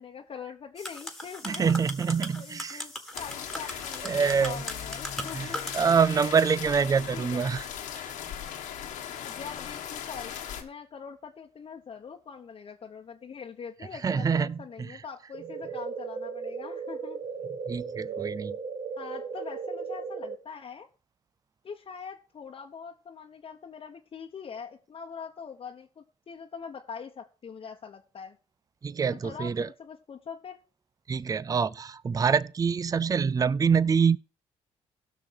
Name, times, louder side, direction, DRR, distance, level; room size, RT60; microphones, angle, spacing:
voice 1, 0.0-1.8 2.4-2.9 3.2-5.6 7.1-7.4 9.2-10.3 10.6-17.2 19.0-20.9 21.6-28.4 29.2-30.6, left 6 dB, 45° left, 1.1 m, -43 dB
sound 1, 0.8-5.9, left 1 dB, 5° left, 1.8 m, -39 dB
voice 2, 1.4-2.8 4.0-4.6 5.3-5.5 5.7-7.7 7.9-8.1 14.0-15.0 17.7-18.5 28.8-29.7 31.1-34.2, right 6 dB, 30° right, 0.4 m, -25 dB
sound 2, 3.1-10.6, left 9 dB, 90° left, 1.6 m, -38 dB
sound 3, 15.3-20.4, right 5 dB, 55° right, 1.2 m, -36 dB
16.0 x 6.1 x 4.7 m
supercardioid pair, 70°, 13 cm